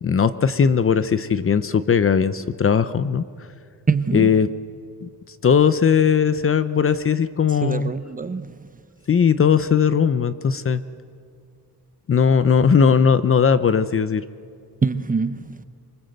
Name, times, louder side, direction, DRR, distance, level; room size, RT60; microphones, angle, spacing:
voice 1, 0.0-3.2 4.1-4.5 5.0-5.1 5.4-7.9 9.1-10.8 12.1-14.2, left 6 dB, 35° left, 13 dB, 0.6 m, -18 dB
voice 2, 3.9-4.3 7.6-8.7 14.8-15.6, right 4 dB, 20° right, 11 dB, 0.7 m, -24 dB
26.5 x 24.0 x 7.9 m, 2.3 s
wide cardioid pair, 165°, 39 cm